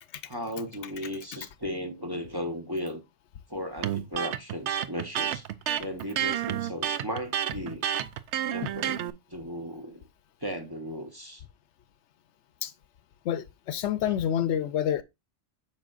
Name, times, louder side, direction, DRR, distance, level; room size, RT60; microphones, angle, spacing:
voice 1, 0.3-3.0 3.5-5.4 5.8-7.9 8.5-9.0 9.3-10.0 10.4-11.4, equal, 20° right, 0.9 m, -36 dB
Electric guitar, 3.8-9.1, right 10 dB, 75° right, 0.9 m, -30 dB
voice 2, 13.2-15.0, left 10 dB, 75° left, 0.9 m, -28 dB
8.4 x 6.1 x 2.4 m
omnidirectional pair, 1.2 m